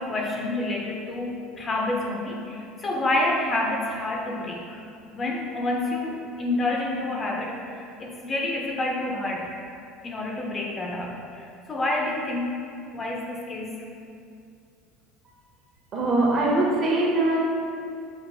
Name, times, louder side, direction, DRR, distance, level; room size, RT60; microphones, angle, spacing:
voice 1, 0.0-4.8 5.1-9.6 10.0-12.6 12.9-13.8, left 2 dB, 25° left, -2 dB, 0.4 m, -28 dB
voice 2, 15.9-17.4, right 2 dB, 40° right, -3 dB, 0.8 m, -22 dB
6.1 x 2.4 x 2.6 m, 2.4 s
cardioid pair, 140°, 0 cm